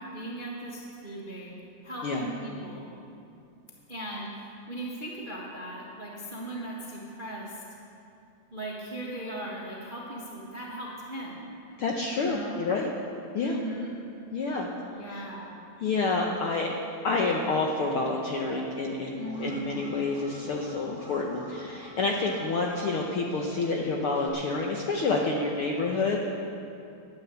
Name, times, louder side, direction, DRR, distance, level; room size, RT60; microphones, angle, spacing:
voice 1, 0.0-1.6 1.8-2.9 3.9-7.6 8.5-11.5 12.2-12.6 13.4-14.0 14.9-15.6 19.1-19.8, right 1 dB, 35° right, -4 dB, 0.8 m, -38 dB
voice 2, 11.8-12.9 13.3-13.6 14.3-14.7 15.1-15.2 15.8-16.7 17.0-26.3, left 3 dB, 70° left, 0 dB, 1.4 m, -28 dB
Alarm, 19.2-24.3, right 1 dB, 15° right, 1.3 m, -48 dB
10.5 x 10.5 x 8.2 m, 2.6 s
omnidirectional pair, 3.5 m